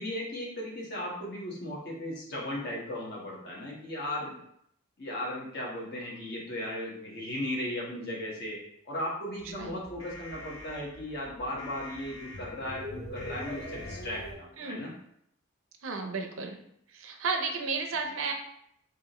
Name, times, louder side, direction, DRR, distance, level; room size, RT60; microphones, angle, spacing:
voice 1, 0.0-4.4 5.0-8.6 8.9-14.9, left 1 dB, 50° left, -4 dB, 1.3 m, -36 dB
sound 1, 9.4-14.3, equal, 80° left, 0.9 m, -43 dB
voice 2, 15.8-16.6 16.9-18.3, right 4 dB, 70° right, 4 dB, 0.6 m, -33 dB
4.8 x 2.6 x 3.0 m, 0.71 s
head